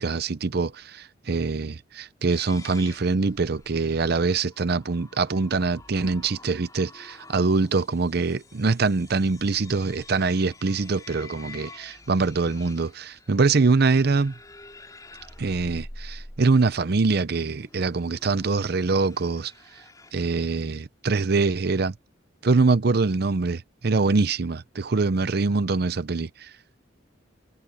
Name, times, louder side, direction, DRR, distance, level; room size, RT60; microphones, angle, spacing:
voice 1, 0.0-14.3 15.4-19.5 20.1-21.9 22.4-26.5, right 3 dB, 55° right, 0.6 m, -24 dB
sound 1, 2.3-20.1, left 2 dB, 20° left, 3.8 m, -48 dB
head